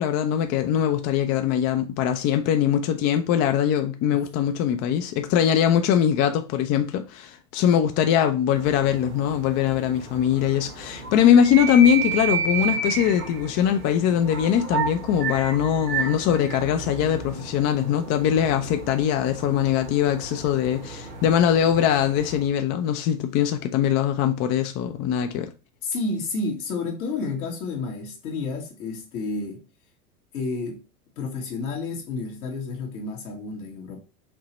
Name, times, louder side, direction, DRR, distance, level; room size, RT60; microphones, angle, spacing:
voice 1, 0.0-25.5, left 9 dB, 35° left, 0.5 m, -22 dB
sound 1, 8.5-22.5, right 5 dB, 85° right, 1.8 m, -32 dB
voice 2, 25.8-29.6 30.3-30.8 31.2-34.0, left 3 dB, 70° left, 1.7 m, -30 dB
5.3 x 2.9 x 2.9 m
hypercardioid pair, 95°, 45 cm